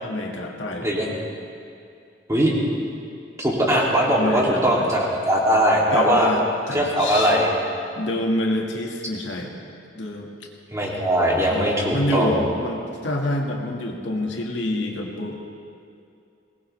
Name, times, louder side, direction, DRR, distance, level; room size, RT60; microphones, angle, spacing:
voice 1, 0.0-1.2 4.1-4.9 5.9-7.4 8.0-9.5 9.9-10.3 11.5-15.5, left 1 dB, 85° left, 0 dB, 1.9 m, -27 dB
voice 2, 3.4-6.3 6.7-7.5 10.7-12.4, equal, 15° right, -4 dB, 2.7 m, -20 dB
21.5 x 19.0 x 3.4 m, 2.5 s
head